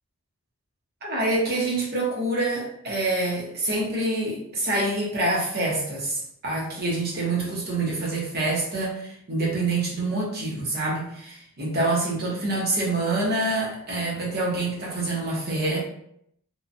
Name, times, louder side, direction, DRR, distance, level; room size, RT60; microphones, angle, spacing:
voice 1, 1.0-15.8, right 2 dB, 45° right, -4 dB, 0.8 m, -26 dB
2.9 x 2.2 x 2.5 m, 0.72 s
head